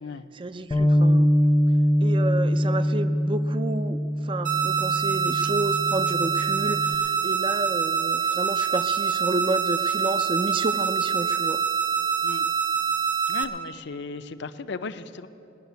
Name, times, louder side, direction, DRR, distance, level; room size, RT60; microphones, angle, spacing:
voice 1, 0.3-1.3 2.0-11.6, right 2 dB, 25° right, 11 dB, 0.4 m, -30 dB
Bass guitar, 0.7-7.0, equal, 20° left, 0.7 m, -23 dB
sound 1, 4.4-13.4, right 7 dB, 40° right, 0.8 m, -25 dB
voice 2, 13.3-15.3, left 4 dB, 60° left, 11 dB, 0.5 m, -36 dB
19.0 x 6.4 x 9.3 m, 2.8 s
head